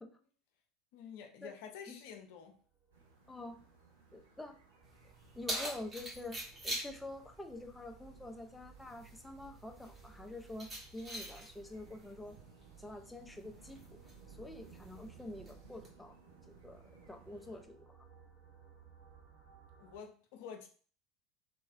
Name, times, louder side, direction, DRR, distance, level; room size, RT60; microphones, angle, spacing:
voice 1, 0.9-2.6 19.8-20.7, left 7 dB, 60° left, 4 dB, 0.5 m, -49 dB
sound 1, 2.3-20.0, right 6 dB, 50° right, 1.4 m, -63 dB
sound 2, 2.9-17.7, right 4 dB, 75° right, 0.5 m, -62 dB
voice 2, 3.3-3.6 4.1-4.6 5.3-12.4 12.8-13.8 14.3-16.2 16.5-18.0, left 2 dB, 5° left, 5 dB, 0.5 m, -47 dB
Keys jangling, 4.8-15.9, right 1 dB, 20° right, 1.2 m, -46 dB
2.9 x 2.3 x 2.5 m, 0.42 s
figure-of-eight pair, 70°, 0 cm